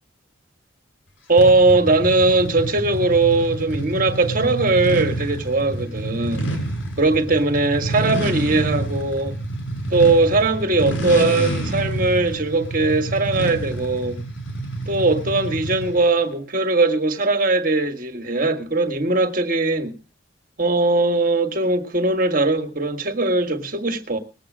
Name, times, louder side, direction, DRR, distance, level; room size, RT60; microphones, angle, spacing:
voice 1, 1.3-6.5 7.0-9.4 9.9-14.2 14.9-20.0 20.6-24.2, right 2 dB, 45° right, 1.7 m, -20 dB
sound 1, 1.4-16.1, right 1 dB, 90° left, 5.5 m, -28 dB
20.0 x 7.9 x 6.1 m
head